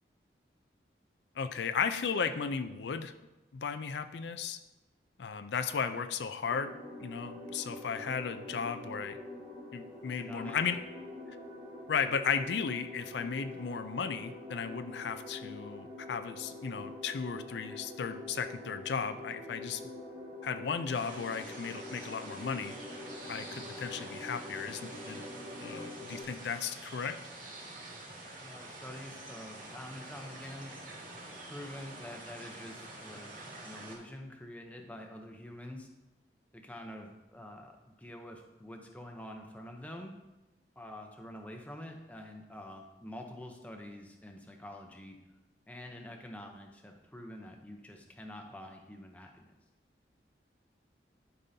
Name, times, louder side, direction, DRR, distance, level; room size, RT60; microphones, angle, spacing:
voice 1, 1.4-3.1 3.5-4.6 5.2-6.7 7.0-9.2 9.7-10.8 11.9-19.8 20.4-22.7 23.3-25.3 25.6-27.2, left 6 dB, 80° left, 10 dB, 0.4 m, -35 dB
sound 1, 6.4-26.2, left 2 dB, 25° right, 2.7 m, -45 dB
voice 2, 10.1-10.9 28.4-30.7 31.5-35.9 36.5-40.1 40.8-45.2 45.7-49.5, left 1 dB, 10° left, 3 dB, 0.7 m, -47 dB
sound 2, 20.9-34.0, right 2 dB, 50° right, 2.4 m, -47 dB
12.0 x 5.5 x 2.7 m, 1.0 s
head